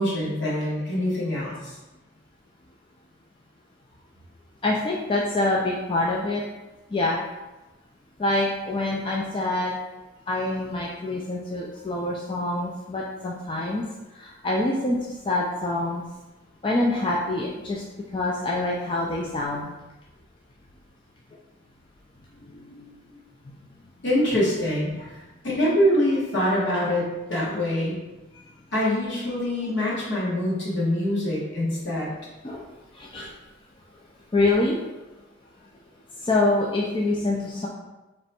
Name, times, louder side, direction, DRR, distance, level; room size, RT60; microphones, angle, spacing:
voice 1, 0.0-1.8 24.0-24.9 25.4-28.0 28.7-32.1, left 1 dB, 60° left, -6 dB, 1.4 m, -24 dB
voice 2, 4.6-6.4 6.9-7.2 8.2-9.8 10.3-13.8 14.2-15.0 15.2-16.0 16.6-17.8 18.1-19.6 22.4-22.9 28.3-28.4 32.4-32.6 32.9-33.3 34.3-34.8 36.2-37.7, left 2 dB, 25° left, -3 dB, 0.3 m, -25 dB
3.3 x 3.0 x 4.3 m, 1.1 s
head